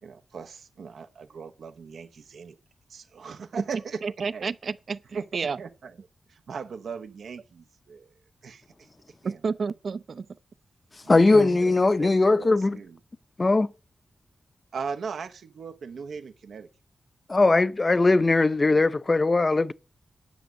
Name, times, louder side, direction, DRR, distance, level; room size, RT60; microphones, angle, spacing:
voice 1, 0.0-2.6 2.9-4.0 4.3-4.5 5.1-5.3 5.6-6.0 6.3-8.1 8.4-8.9 9.2-9.4 11.0-13.0 14.7-16.7, right 5 dB, 85° right, 0.9 m, -39 dB
voice 2, 4.0-5.6 9.2-10.3 11.3-11.6, right 5 dB, 65° right, 0.5 m, -31 dB
voice 3, 11.1-12.8 13.4-13.7 17.3-19.7, left 3 dB, 35° left, 0.6 m, -20 dB
10.0 x 6.1 x 8.1 m
cardioid pair, 80°, 0 cm